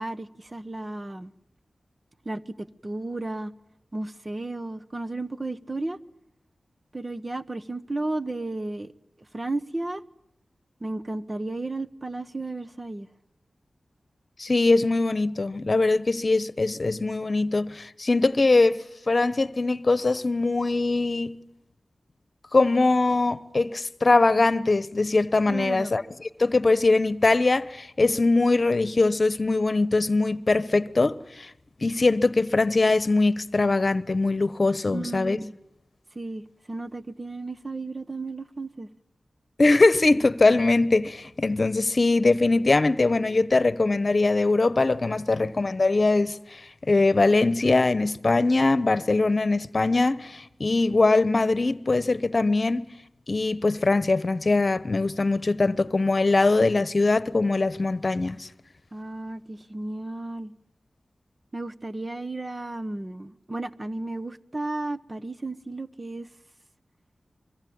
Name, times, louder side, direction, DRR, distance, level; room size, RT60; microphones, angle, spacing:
voice 1, 0.0-1.3 2.2-3.5 3.9-6.0 6.9-8.9 9.3-10.0 10.8-13.1 25.5-25.9 34.9-35.6 36.1-36.4 36.7-38.9 58.9-60.5 61.5-66.3, right 2 dB, 35° right, 1.2 m, -33 dB
voice 2, 14.4-18.8 19.1-21.3 22.5-26.0 26.4-31.5 31.8-35.4 39.6-52.9 53.3-58.5, left 3 dB, 50° left, 1.0 m, -22 dB
24.5 x 23.5 x 8.7 m
cardioid pair, 45°, 0 cm